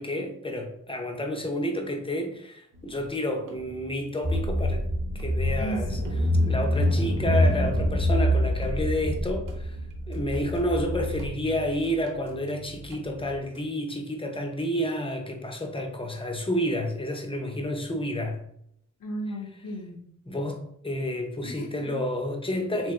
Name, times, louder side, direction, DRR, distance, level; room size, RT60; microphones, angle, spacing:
voice 1, 0.0-4.9 5.1-6.0 6.5-9.8 10.1-18.4 20.3-22.9, equal, 15° left, 3 dB, 0.6 m, -30 dB
sound 1, 2.7-3.1 3.5-4.0 4.3-4.8 5.2-5.7 6.0-6.5 6.9-7.4 7.8-8.2 8.6-9.1 9.5-10.8 11.2-13.6, right 2 dB, 75° right, 0.8 m, -46 dB
Car / Engine, 4.2-11.3, left 1 dB, 40° right, 1.1 m, -25 dB
voice 2, 5.6-6.0 19.0-20.0 21.4-22.0 22.5-22.8, right 1 dB, 80° left, 0 dB, 0.9 m, -35 dB
3.7 x 3.3 x 3.2 m, 0.72 s
wide cardioid pair, 125°, 32 cm